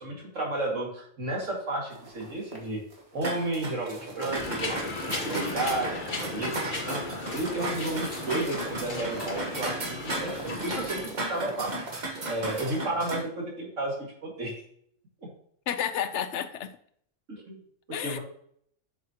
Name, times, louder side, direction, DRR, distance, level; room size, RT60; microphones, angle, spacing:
voice 1, 0.0-2.8 3.1-7.0 7.3-11.7 12.3-14.5 15.2-15.3 17.3-17.6 18.0-18.2, right 2 dB, 85° right, -1 dB, 2.6 m, -32 dB
sound 1, 1.9-3.6 4.0-4.6 4.9-12.8, right 2 dB, 55° right, 1.9 m, -45 dB
sound 2, 3.2-13.2, right 2 dB, 40° right, 1.4 m, -36 dB
sound 3, 4.3-11.1, left 2 dB, 40° left, 1.4 m, -36 dB
voice 2, 15.7-16.7 17.9-18.2, left 9 dB, 70° left, 11 dB, 1.0 m, -31 dB
7.6 x 7.0 x 2.9 m, 0.65 s
omnidirectional pair, 1.3 m